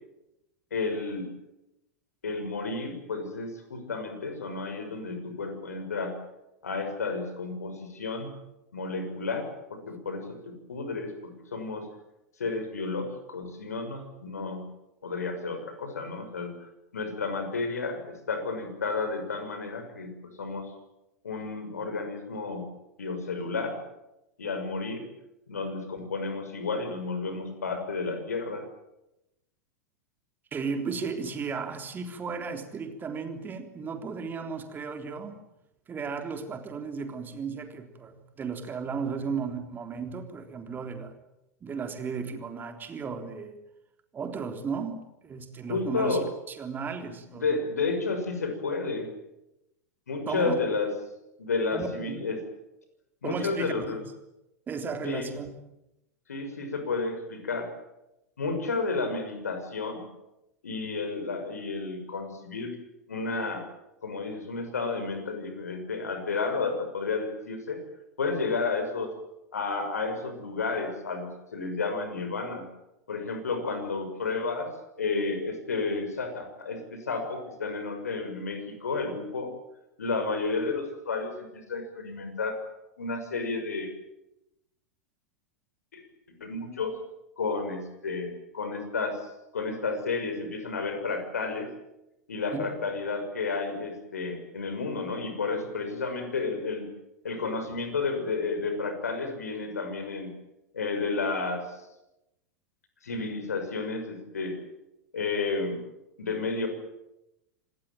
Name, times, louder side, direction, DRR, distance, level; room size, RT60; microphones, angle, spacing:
voice 1, 0.7-1.3 2.2-6.1 6.6-8.3 8.7-11.9 12.4-14.6 15.0-16.5 16.9-20.7 21.2-22.6 23.0-23.8 24.4-25.0 25.5-28.6 45.7-46.3 47.0-49.1 50.1-50.9 51.4-52.4 53.2-54.0 55.0-55.3 56.3-57.7 58.4-60.1 60.6-62.7 63.1-63.6 64.0-67.8 68.2-69.1 69.5-72.6 73.1-74.7 75.0-79.5 80.0-82.6 83.0-83.9 85.9-86.0 86.3-86.9 87.4-89.2 89.5-91.7 92.3-96.9 97.2-100.3 100.7-101.8 103.0-104.6 105.1-105.8 106.2-106.7, left 4 dB, 75° left, 7 dB, 6.2 m, -31 dB
voice 2, 30.5-35.4 35.9-41.1 41.6-43.5 44.1-46.2 46.5-47.6 50.3-50.6 51.7-52.2 53.2-54.0 54.7-55.5 92.5-92.9, right 5 dB, 20° right, 6 dB, 3.6 m, -35 dB
26.5 x 19.0 x 9.1 m, 0.89 s
figure-of-eight pair, 90°, 9 cm